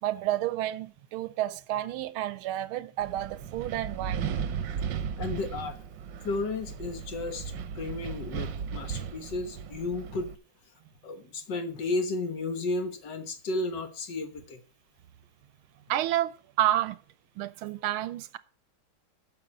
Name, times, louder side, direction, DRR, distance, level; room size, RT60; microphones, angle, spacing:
voice 1, 0.0-4.3 15.9-17.0 17.4-18.4, right 13 dB, 85° right, 1.5 m, -30 dB
Wind, 3.0-10.3, right 7 dB, 65° right, 1.3 m, -36 dB
voice 2, 5.2-5.8 6.2-10.3 11.0-14.6, left 3 dB, 60° left, 1.7 m, -33 dB
9.4 x 6.6 x 7.3 m
omnidirectional pair, 2.3 m